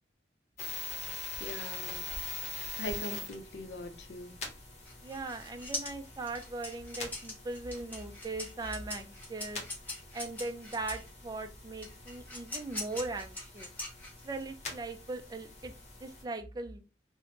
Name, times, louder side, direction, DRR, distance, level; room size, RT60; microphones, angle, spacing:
sound 1, 0.6-16.2, left 3 dB, 40° left, 0.8 m, -44 dB
voice 1, 1.4-2.0 2.6-4.3, equal, 80° left, 0.5 m, -41 dB
sound 2, 4.8-11.1 11.8-14.4, left 1 dB, 10° left, 0.8 m, -42 dB
voice 2, 5.0-9.6 10.1-13.7 14.2-15.7 16.0-16.8, right 2 dB, 20° right, 0.3 m, -39 dB
3.2 x 2.1 x 2.8 m
head